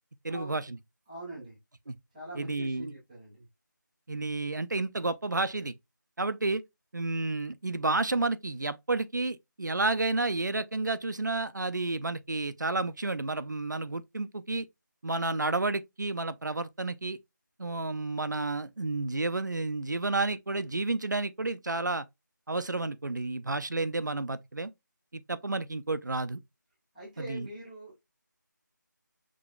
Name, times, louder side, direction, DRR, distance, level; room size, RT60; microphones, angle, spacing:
voice 1, 0.2-0.8 1.9-2.0 2.4-2.9 4.1-5.7 6.2-6.6 6.9-14.7 15.0-17.2 17.6-22.0 22.5-24.7 25.1-26.4 27.2-27.5, right 3 dB, 65° right, 0.5 m, -31 dB
voice 2, 1.1-1.6 2.1-3.5 26.9-28.0, right 1 dB, ahead, 0.4 m, -43 dB
6.1 x 2.7 x 2.2 m
figure-of-eight pair, 165°, 11 cm